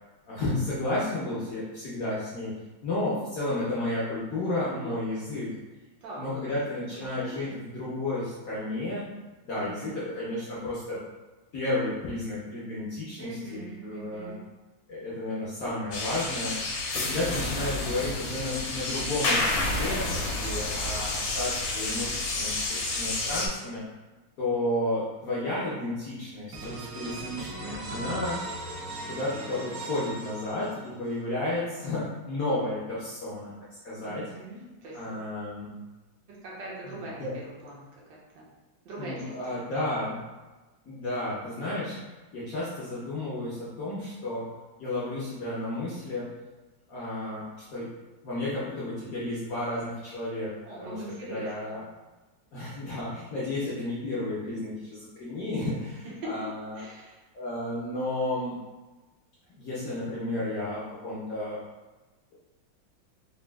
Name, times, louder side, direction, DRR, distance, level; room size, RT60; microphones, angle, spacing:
voice 1, 0.3-2.5 2.8-5.5 6.2-9.0 9.4-11.0 11.5-14.3 14.9-16.6 16.9-23.8 24.4-28.4 29.1-33.5 33.8-34.2 34.9-35.8 37.2-37.3 39.0-40.2 40.9-44.5 44.8-46.3 46.9-47.4 47.7-47.9 48.2-50.5 50.8-50.9 51.2-51.8 52.5-56.8 57.3-58.6 59.6-61.6, left 1 dB, 65° left, -8 dB, 0.9 m, -32 dB
voice 2, 4.6-5.0 6.0-7.6 9.5-10.0 13.2-14.5 17.5-17.9 27.6-28.2 31.5-31.9 34.0-35.2 36.3-38.5 38.8-39.6 50.7-51.8 56.0-56.5 56.7-57.2, right 2 dB, 65° right, -5 dB, 1.3 m, -42 dB
sound 1, 15.9-23.5, left 2 dB, 85° left, 1.4 m, -30 dB
sound 2, 26.5-31.1, right 2 dB, 85° right, 0.7 m, -38 dB
4.0 x 2.2 x 2.2 m, 1.2 s
omnidirectional pair, 2.1 m